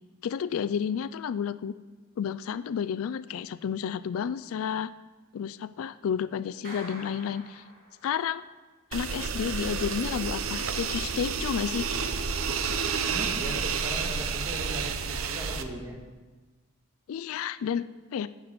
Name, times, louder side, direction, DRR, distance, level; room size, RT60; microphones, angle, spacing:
voice 1, 0.2-1.7 2.2-4.9 5.3-7.6 8.0-8.4 8.9-11.9 17.1-18.3, left 7 dB, 80° left, 15 dB, 0.3 m, -31 dB
Clapping, 6.6-8.4, right 1 dB, 45° right, 3.2 m, -46 dB
sound 1, 8.9-15.6, right 5 dB, 75° right, 0.7 m, -30 dB
voice 2, 13.1-16.0, equal, 15° right, 0 dB, 1.8 m, -39 dB
11.5 x 8.1 x 5.0 m, 1.3 s
head